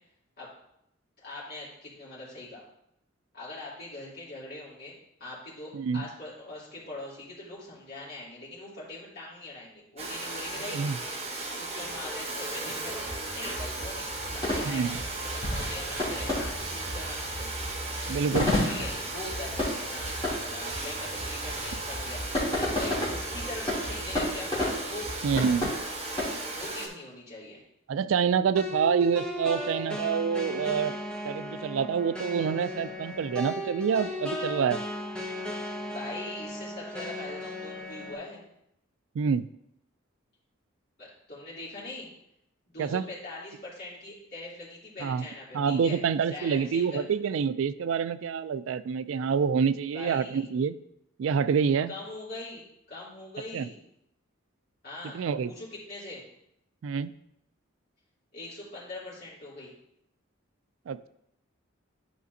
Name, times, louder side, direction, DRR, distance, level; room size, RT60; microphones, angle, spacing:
voice 1, 1.2-2.6 3.3-4.9 5.2-11.0 11.6-13.1 13.3-14.9 15.2-17.6 18.6-22.2 22.5-25.7 26.5-27.6 35.9-38.4 41.0-42.1 42.6-46.0 46.3-47.0 49.9-50.5 51.9-52.6 52.9-53.8 54.8-56.2 58.3-59.7, left 2 dB, 50° left, -8 dB, 3.1 m, -42 dB
voice 2, 5.7-6.0 10.7-11.0 14.7-15.0 18.1-18.5 25.2-25.7 27.9-31.0 31.2-34.8 39.2-39.5 42.8-43.0 45.0-45.2 45.5-50.8 51.2-51.9 53.5-53.7 55.1-55.5 56.8-57.1 60.9-61.1, right 6 dB, 75° right, 14 dB, 0.3 m, -27 dB
Domestic sounds home sounds, 10.0-26.9, right 2 dB, 30° right, 1.2 m, -36 dB
sound 1, 12.8-26.2, left 1 dB, 20° left, 2.8 m, -33 dB
sound 2, 28.5-38.1, left 1 dB, 5° left, 0.9 m, -36 dB
11.0 x 5.1 x 2.7 m, 0.77 s
head